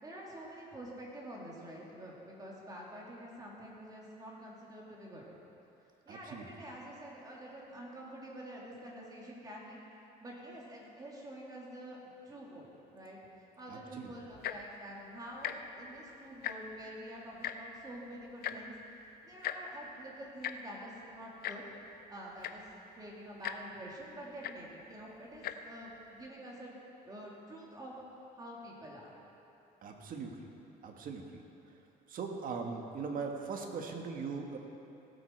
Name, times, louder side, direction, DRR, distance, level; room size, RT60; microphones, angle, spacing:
voice 1, 0.0-5.3 6.1-9.8 10.2-12.0 12.2-13.2 13.6-18.7 19.2-21.6 22.1-22.7 23.0-26.7 27.0-27.9 28.4-29.2, right 1 dB, 20° right, -4 dB, 2.7 m, -47 dB
voice 2, 6.1-6.5 13.7-14.1 29.8-30.4 30.8-31.4 32.1-34.6, right 5 dB, 55° right, 3 dB, 1.5 m, -40 dB
Tick-tock, 14.3-14.7 15.4-15.5 15.9-16.0 16.3-16.8 17.4-17.5 18.4-18.6 19.4-19.6 20.4-20.5 21.4-21.6 22.1-22.2 22.4-22.7 23.4-23.6 24.4-24.5 25.3-25.5 26.2-26.3, left 11 dB, 65° left, 0.6 m, -37 dB
17.5 x 8.2 x 4.6 m, 2.9 s
cardioid pair, 110°, 17 cm